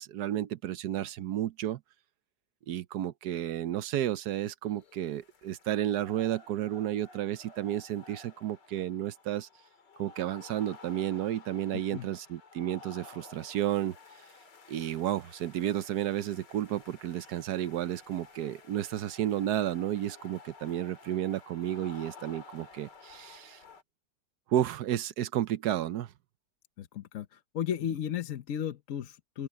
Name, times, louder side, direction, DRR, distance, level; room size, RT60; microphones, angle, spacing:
voice 1, 0.0-1.8 2.7-9.5 10.0-14.0 14.7-23.6 24.5-26.1, right 12 dB, 70° right, 1.3 m, -32 dB
sound 1, 4.6-23.8, left 3 dB, 90° left, 2.8 m, -53 dB
voice 2, 26.8-29.5, left 9 dB, 55° left, 1.1 m, -34 dB
open air
omnidirectional pair, 1.8 m